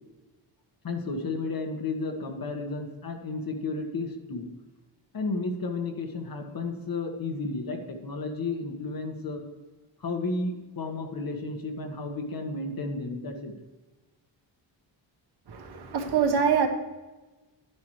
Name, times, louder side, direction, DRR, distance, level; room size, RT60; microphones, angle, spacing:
voice 1, 0.8-4.5 5.1-9.4 10.0-13.5, left 3 dB, 50° left, 4 dB, 1.5 m, -32 dB
voice 2, 15.5-16.7, right 6 dB, 60° right, 4 dB, 1.3 m, -24 dB
11.5 x 10.5 x 3.2 m, 1.2 s
wide cardioid pair, 145°, 45 cm